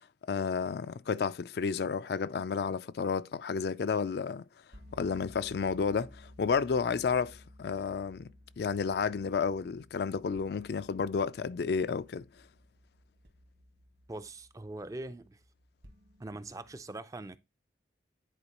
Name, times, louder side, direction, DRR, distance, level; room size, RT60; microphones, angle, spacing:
voice 1, 0.3-4.4 5.0-8.3 8.6-12.3, left 5 dB, 60° left, 0.3 m, -31 dB
sound 1, 4.7-16.7, left 1 dB, 70° right, 1.6 m, -57 dB
voice 2, 14.1-15.4 16.2-17.4, right 2 dB, 20° right, 0.3 m, -42 dB
10.0 x 4.4 x 2.9 m
head